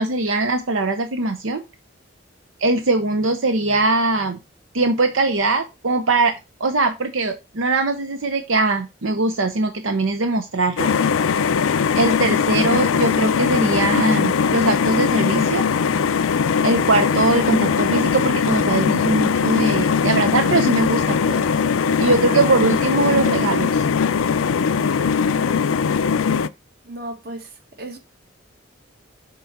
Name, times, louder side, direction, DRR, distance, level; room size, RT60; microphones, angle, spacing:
voice 1, 0.0-1.6 2.6-4.4 4.7-6.3 6.6-10.9 12.0-15.6 16.6-21.4 22.0-23.8, right 3 dB, 80° right, 0.8 m, -21 dB
sound 1, 10.8-26.5, left 6 dB, 85° left, 0.5 m, -20 dB
voice 2, 22.0-22.4 25.0-25.4 26.9-27.5 27.8-28.0, right 1 dB, 50° right, 1.6 m, -36 dB
6.8 x 3.8 x 5.9 m
head